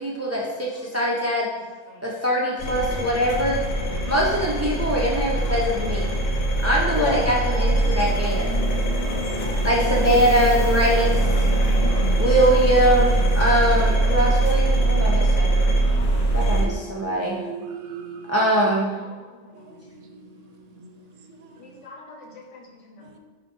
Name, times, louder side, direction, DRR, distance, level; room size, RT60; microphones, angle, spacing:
voice 1, 0.0-1.5 2.0-3.6 4.1-6.2 6.6-8.5 9.6-11.2 12.2-15.5 16.3-17.4 18.3-19.0, equal, 25° right, -4 dB, 0.4 m, -22 dB
sound 1, 2.6-16.7, right 2 dB, 55° left, 0.8 m, -22 dB
voice 2, 6.8-7.2 9.1-9.5 14.2-14.3 16.0-16.6 19.4-19.5 21.6-23.2, left 3 dB, 75° left, -1 dB, 1.2 m, -34 dB
voice 3, 11.8-12.2 16.4-18.3 19.6-20.5 20.8-21.0 21.4-21.5 23.0-23.2, right 5 dB, 90° right, 5 dB, 0.9 m, -39 dB
5.0 x 2.7 x 3.7 m, 1.4 s
omnidirectional pair, 1.3 m